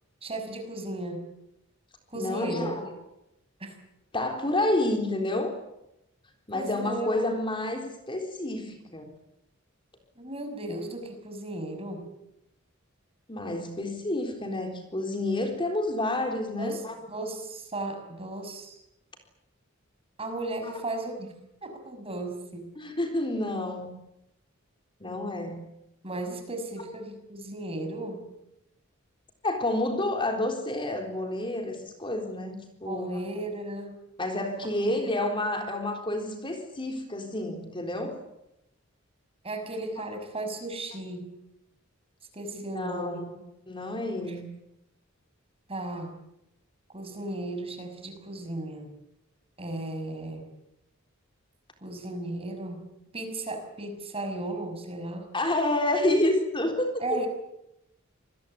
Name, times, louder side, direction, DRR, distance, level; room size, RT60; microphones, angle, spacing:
voice 1, 0.2-1.3 2.1-2.7 3.6-3.8 6.5-7.1 10.2-12.1 16.6-18.8 20.2-21.3 21.6-22.7 26.0-28.3 32.9-34.0 35.0-35.1 39.4-41.3 42.3-43.3 44.3-44.4 45.7-46.1 46.9-48.9 49.6-50.5 51.8-52.8 53.1-55.3 57.0-57.3, right 2 dB, 30° right, 6 dB, 6.0 m, -35 dB
voice 2, 2.1-2.9 4.1-5.6 6.5-9.1 13.3-17.0 20.6-20.7 22.8-23.9 25.0-25.7 29.4-33.2 34.2-38.2 42.7-43.4 43.7-44.5 55.3-57.3, left 1 dB, 25° left, 4 dB, 3.8 m, -29 dB
27.0 x 21.0 x 8.6 m, 0.86 s
head